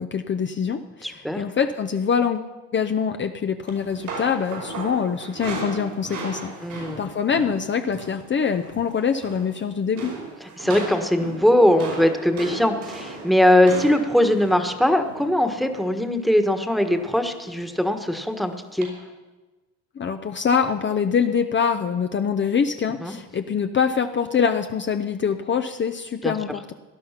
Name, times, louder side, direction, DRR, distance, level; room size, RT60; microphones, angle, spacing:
voice 1, 0.0-2.4 2.7-10.1 20.0-26.7, left 6 dB, 40° left, 7 dB, 0.7 m, -24 dB
voice 2, 1.0-1.4 6.6-7.0 10.6-18.9 23.0-23.1 26.2-26.3, left 1 dB, ahead, 6 dB, 1.4 m, -20 dB
sound 1, 3.7-8.2 8.5-8.8 9.1-9.6 10.0-16.0 16.8-17.2 17.6-17.7 18.8-18.9, right 3 dB, 90° right, 5.6 m, -36 dB
18.0 x 11.5 x 5.9 m, 1.2 s
cardioid pair, 90°, 30 cm